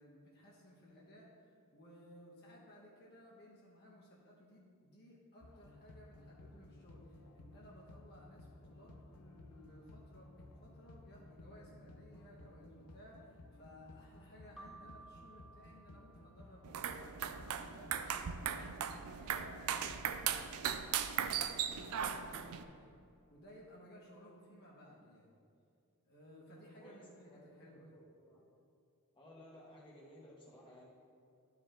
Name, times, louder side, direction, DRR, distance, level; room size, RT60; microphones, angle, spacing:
voice 1, 0.0-17.9 18.4-22.9 23.3-25.3 26.1-27.9, equal, 50° left, -4 dB, 1.3 m, -58 dB
sound 1, 5.4-20.1, left 1 dB, 85° left, 0.7 m, -57 dB
Keyboard (musical), 14.6-17.1, right 3 dB, ahead, 0.4 m, -58 dB
sound 2, 16.6-22.6, right 8 dB, 70° right, 0.4 m, -38 dB
voice 2, 26.5-28.4 29.1-30.9, equal, 20° left, -4 dB, 1.5 m, -58 dB
12.0 x 4.7 x 3.8 m, 2.4 s
head